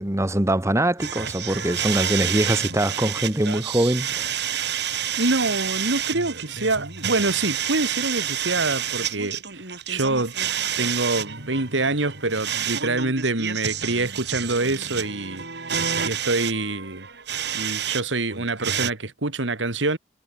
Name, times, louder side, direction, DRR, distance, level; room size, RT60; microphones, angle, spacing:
voice 1, 0.0-4.3 4.6-4.8, right 1 dB, 15° right, 1.4 m, -23 dB
sound 1, 1.0-18.0 18.3-18.9, right 9 dB, 60° right, 7.2 m, -29 dB
voice 2, 4.8-10.3 10.8-15.4 16.0-17.1 17.5-20.0, right 2 dB, 75° right, 2.3 m, -26 dB
head